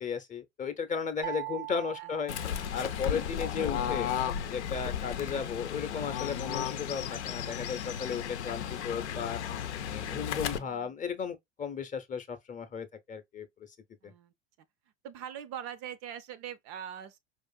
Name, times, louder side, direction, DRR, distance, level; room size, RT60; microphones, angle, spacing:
voice 1, 0.0-2.3 2.7-4.1 4.5-9.4 9.8-13.7 14.0-14.1, left 6 dB, 25° left, 0.6 m, -35 dB
sound 1, 1.2-3.4, right 17 dB, 80° right, 1.0 m, -42 dB
Fowl / Bird, 2.3-10.6, left 9 dB, 80° left, 0.6 m, -34 dB
voice 2, 9.9-10.9 14.0-14.3 15.0-17.2, right 9 dB, 45° right, 0.5 m, -43 dB
4.8 x 2.5 x 2.2 m
hypercardioid pair, 80°, 34 cm